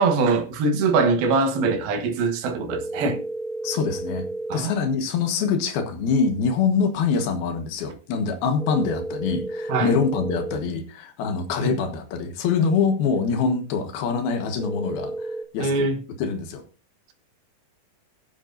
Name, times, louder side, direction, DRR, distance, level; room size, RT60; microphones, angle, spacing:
voice 1, 0.0-3.2 4.5-4.7 9.7-9.9 11.6-11.7 15.6-16.0, right 4 dB, 80° right, 3.3 m, -22 dB
sound 1, 2.7-4.6 8.6-10.6 14.6-15.4, right 1 dB, ahead, 1.3 m, -32 dB
voice 2, 3.6-15.9 16.2-16.6, left 5 dB, 80° left, 3.3 m, -24 dB
21.5 x 7.4 x 2.6 m
omnidirectional pair, 4.3 m